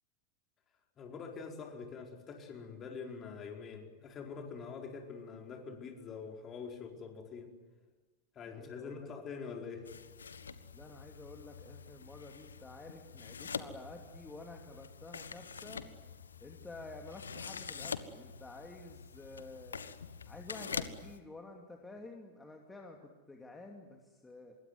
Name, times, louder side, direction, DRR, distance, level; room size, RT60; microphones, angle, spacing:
voice 1, 1.0-7.5 8.3-9.9, left 5 dB, 25° left, 2 dB, 4.8 m, -45 dB
voice 2, 8.4-9.1 10.7-15.8 16.4-19.9 20.2-24.6, left 2 dB, 10° left, 2 dB, 2.7 m, -50 dB
sound 1, 9.9-21.2, left 6 dB, 70° left, 1.4 m, -45 dB
25.5 x 22.5 x 9.5 m, 1.2 s
figure-of-eight pair, 90°, 0 cm